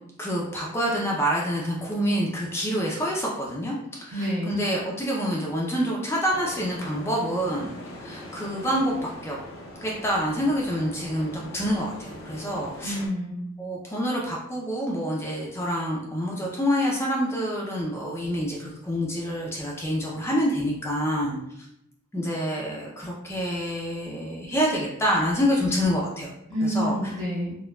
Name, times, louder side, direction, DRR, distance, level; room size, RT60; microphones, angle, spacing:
voice 1, 0.2-9.4 9.8-13.0 13.6-21.4 22.1-26.3 26.6-27.0, equal, 10° left, -3 dB, 0.5 m, -27 dB
voice 2, 4.1-4.7 12.8-13.4 26.5-27.6, equal, 80° right, -14 dB, 1.5 m, -28 dB
sound 1, 6.3-13.1, left 1 dB, 80° left, 0.7 m, -41 dB
4.4 x 2.2 x 2.3 m, 0.78 s
head